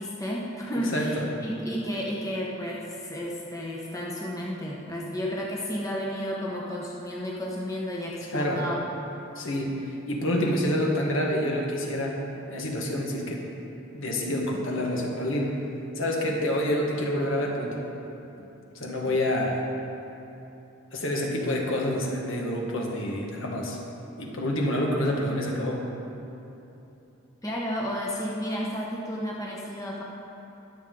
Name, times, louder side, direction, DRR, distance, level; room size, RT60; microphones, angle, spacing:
voice 1, 0.0-8.9 27.4-30.0, equal, 15° left, -3 dB, 1.1 m, -32 dB
voice 2, 0.9-1.3 8.3-8.6 9.3-12.2 12.5-13.5 13.9-15.6 15.9-17.8 18.7-19.6 20.9-23.8 24.2-25.8, left 1 dB, 65° left, -1 dB, 1.6 m, -27 dB
21.0 x 7.3 x 3.8 m, 3.0 s
head